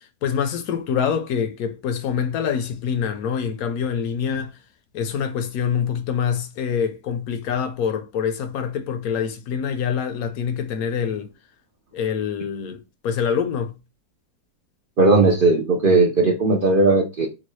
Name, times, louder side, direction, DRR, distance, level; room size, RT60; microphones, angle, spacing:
voice 1, 0.0-4.6 4.9-11.3 11.9-13.7, left 7 dB, 75° left, 1.0 m, -25 dB
voice 2, 15.0-17.3, right 3 dB, 65° right, 0.5 m, -17 dB
3.8 x 2.3 x 3.0 m
omnidirectional pair, 1.6 m